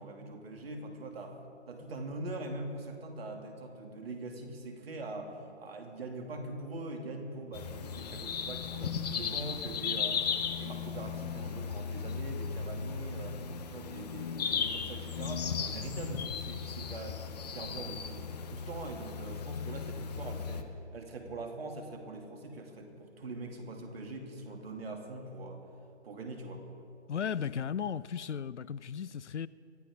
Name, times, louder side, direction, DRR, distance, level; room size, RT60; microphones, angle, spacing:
voice 1, 0.0-1.4 1.7-13.4 13.7-20.7 20.9-25.6 26.0-26.6, right 2 dB, 55° right, 2.4 m, -42 dB
sound 1, 7.5-20.6, left 6 dB, 35° left, 0.9 m, -36 dB
voice 2, 27.1-29.5, left 7 dB, 70° left, 0.5 m, -35 dB
23.5 x 13.0 x 3.7 m
figure-of-eight pair, 135°, 36 cm